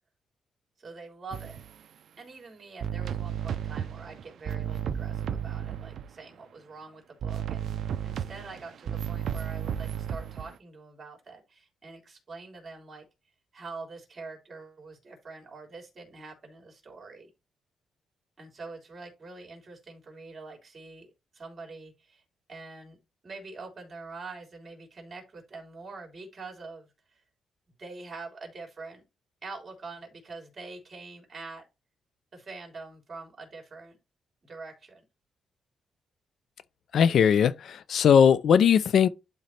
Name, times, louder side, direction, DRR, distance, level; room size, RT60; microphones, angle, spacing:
voice 1, 0.8-1.6 2.2-13.1 13.5-17.3 18.4-22.2 22.5-23.0 23.2-27.2 27.8-29.0 29.4-31.6 32.3-34.0 34.4-35.0, right 3 dB, 35° right, 3.6 m, -45 dB
sound 1, 1.3-1.7 2.8-6.1 7.2-10.5, right 9 dB, 65° right, 0.5 m, -33 dB
voice 2, 36.9-39.1, left 7 dB, 65° left, 0.5 m, -20 dB
11.5 x 4.0 x 3.2 m
cardioid pair, 125°, 0 cm